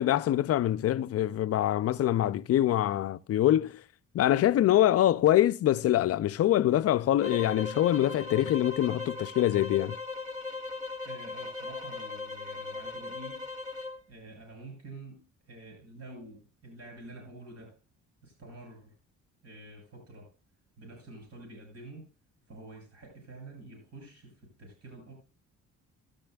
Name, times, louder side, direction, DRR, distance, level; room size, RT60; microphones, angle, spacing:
voice 1, 0.0-3.8 4.1-10.0, left 12 dB, 55° left, 0.4 m, -24 dB
sound 1, 7.2-14.0, left 3 dB, 25° right, 3.1 m, -38 dB
voice 2, 11.0-13.4 14.1-17.8 18.2-18.9 19.4-20.3 20.8-22.1 22.5-25.1, right 2 dB, 55° right, 6.6 m, -48 dB
13.5 x 12.0 x 2.3 m
cardioid pair, 90°, 30 cm